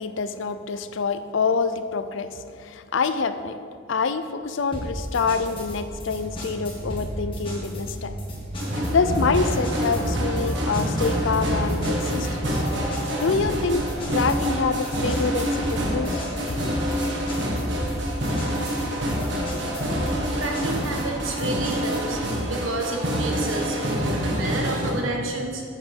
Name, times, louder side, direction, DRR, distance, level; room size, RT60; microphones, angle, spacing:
voice 1, 0.0-3.6 3.9-8.2 8.9-12.6 13.2-16.2 19.5-19.6, left 4 dB, 70° left, 11 dB, 0.5 m, -26 dB
sound 1, 4.7-22.2, equal, 25° left, 1.7 m, -35 dB
Truck, 5.9-18.2, right 1 dB, 45° right, 1.5 m, -40 dB
sound 2, 8.6-24.9, equal, 60° right, 1.5 m, -26 dB
voice 2, 20.3-22.2 22.5-25.6, right 2 dB, 80° right, 1 dB, 1.4 m, -30 dB
7.5 x 6.3 x 6.4 m, 2.3 s
head